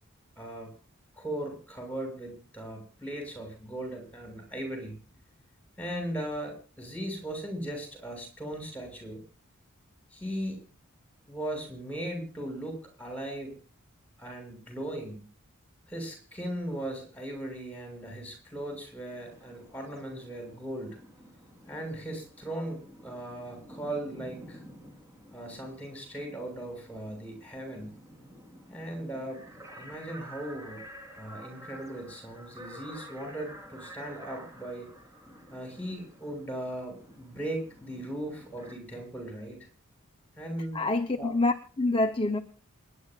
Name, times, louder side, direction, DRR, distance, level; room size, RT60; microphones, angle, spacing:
voice 1, 0.4-0.7 1.2-4.9 5.8-9.2 10.1-10.6 11.3-13.5 14.2-15.2 15.9-21.0 21.7-24.6 25.3-27.9 28.7-29.4 29.8-30.8 31.1-34.9 35.5-39.6 40.4-40.8 41.2-41.3, right 1 dB, 5° left, 6.9 m, -38 dB
sound 1, 19.1-38.8, equal, 15° right, 3.8 m, -50 dB
voice 2, 40.7-42.4, left 2 dB, 25° left, 0.9 m, -26 dB
28.0 x 11.0 x 2.4 m
head